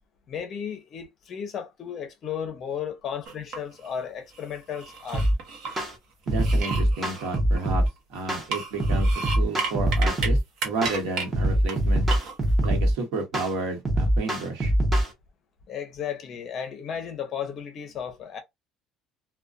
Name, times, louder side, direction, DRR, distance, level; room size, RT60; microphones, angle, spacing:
voice 1, 0.3-5.3 15.7-18.4, left 8 dB, 30° left, 0.6 m, -34 dB
sound 1, 3.3-3.9 4.3-5.8 6.3-8.0 8.4-10.3 10.6-11.3 11.7-11.8 12.1-12.7, right 4 dB, 55° right, 0.8 m, -33 dB
sound 2, 5.1-5.4 5.8-5.9 6.3-7.9 8.3-8.5 8.8-10.4 10.8-11.0 11.3-12.9 13.3-13.5 13.9-15.1, right 1 dB, 10° right, 0.7 m, -23 dB
voice 2, 6.3-7.8 8.1-9.1 9.4-10.4 10.6-12.1 12.6-14.7, right 3 dB, 80° right, 1.0 m, -31 dB
2.4 x 2.2 x 2.4 m
cardioid pair, 180°, 0 cm